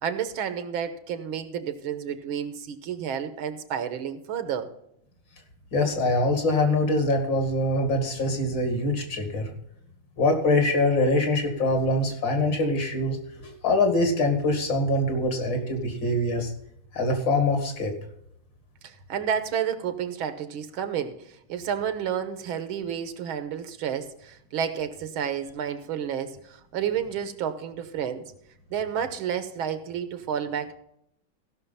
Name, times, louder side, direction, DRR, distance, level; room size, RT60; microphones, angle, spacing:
voice 1, 0.0-4.7 18.8-21.2 21.5-28.2 28.7-30.7, right 8 dB, 75° right, 11 dB, 1.8 m, -30 dB
voice 2, 5.7-9.5 10.2-13.2 13.6-16.5 16.9-17.9, left 2 dB, 60° left, 5 dB, 3.0 m, -24 dB
15.5 x 6.3 x 5.6 m, 0.75 s
omnidirectional pair, 2.3 m